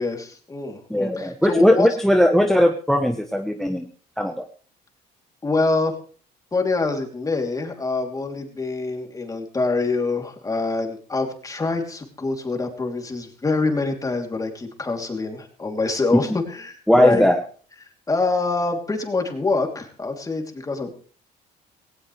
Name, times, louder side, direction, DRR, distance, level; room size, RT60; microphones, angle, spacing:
voice 1, 0.0-1.9 5.4-5.9 6.5-17.3 18.1-20.9, left 3 dB, 20° left, 3 dB, 3.1 m, -25 dB
voice 2, 0.9-3.9 4.2-4.5 16.1-16.4 16.9-17.4, equal, ahead, 7 dB, 1.0 m, -18 dB
18.0 x 17.5 x 3.3 m, 0.41 s
cardioid pair, 110°, 17 cm